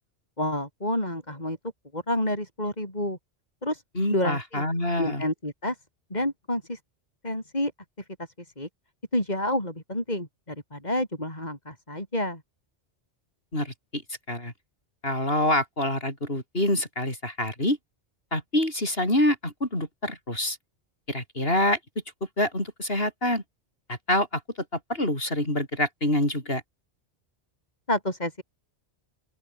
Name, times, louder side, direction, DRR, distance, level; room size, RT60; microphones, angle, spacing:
voice 1, 0.4-1.6 1.9-3.2 3.6-3.8 4.1-4.6 5.0-5.8 6.1-6.8 7.2-7.7 8.2-8.3 8.6-8.7 9.1-12.4 27.9-28.4, left 1 dB, 40° left, 7.6 m, -29 dB
voice 2, 3.9-5.2 13.5-14.0 14.3-14.5 15.0-17.8 18.3-20.6 21.1-21.8 22.4-23.4 23.9-24.4 24.9-26.6, left 1 dB, 60° left, 8.4 m, -26 dB
open air
omnidirectional pair, 1.1 m